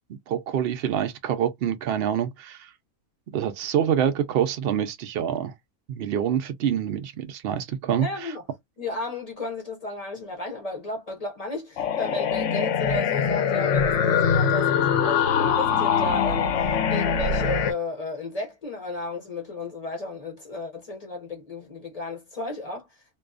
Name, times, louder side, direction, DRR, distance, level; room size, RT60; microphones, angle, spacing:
voice 1, 0.1-2.7 3.3-5.5 5.9-8.3, right 9 dB, 80° right, 0.5 m, -26 dB
voice 2, 8.0-8.4 8.8-22.9, left 2 dB, 40° left, 0.5 m, -33 dB
sound 1, 11.8-17.7, left 7 dB, 65° left, 0.8 m, -23 dB
2.6 x 2.3 x 2.3 m
omnidirectional pair, 1.6 m